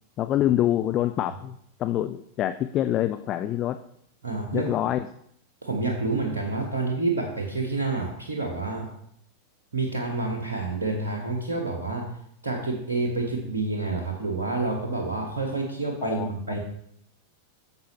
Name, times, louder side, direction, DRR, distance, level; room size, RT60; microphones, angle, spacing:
voice 1, 0.2-3.8 4.5-5.1 16.0-16.3, left 12 dB, 35° left, 11 dB, 0.3 m, -26 dB
voice 2, 4.2-4.7 5.6-8.9 9.7-12.1 12.4-16.6, right 3 dB, 70° right, -1 dB, 1.3 m, -28 dB
9.4 x 6.9 x 3.0 m, 0.69 s
figure-of-eight pair, 90°, 0 cm